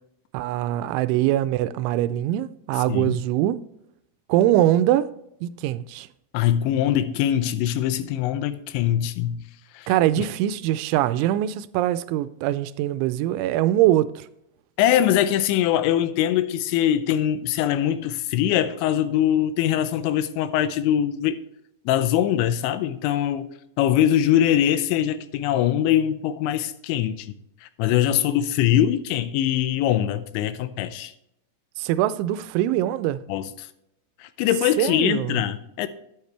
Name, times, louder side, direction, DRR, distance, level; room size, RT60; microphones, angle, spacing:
voice 1, 0.3-3.6 4.3-5.2 5.4-6.1 9.9-14.3 31.8-33.2 34.8-35.5, right 13 dB, 90° right, 3.0 m, -23 dB
voice 2, 6.3-9.4 9.7-9.9 14.8-21.4 21.9-23.5 23.8-27.3 27.6-31.1 33.3-33.7 34.2-35.9, left 11 dB, 85° left, 2.9 m, -22 dB
9.7 x 9.5 x 3.3 m
omnidirectional pair, 5.3 m